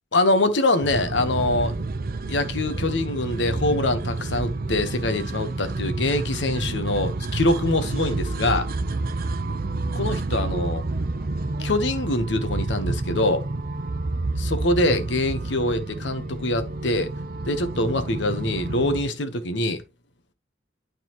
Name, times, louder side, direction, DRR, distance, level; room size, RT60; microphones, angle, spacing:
voice 1, 0.1-1.7 2.3-8.7 9.9-10.8 11.6-13.5 14.3-17.1 17.5-19.8, left 2 dB, 75° left, 1.1 m, -24 dB
sound 1, 0.8-19.0, right 2 dB, 55° right, 0.7 m, -29 dB
12.0 x 4.0 x 3.0 m
head